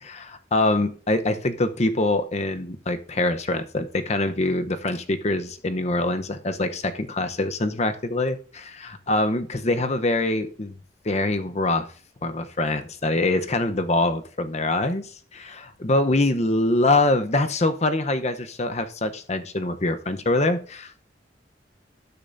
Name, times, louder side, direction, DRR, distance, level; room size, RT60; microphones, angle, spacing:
voice 1, 0.0-10.8 11.0-11.9 12.2-21.1, left 2 dB, 40° left, 9 dB, 0.8 m, -24 dB
18.0 x 6.8 x 2.7 m, 0.43 s
head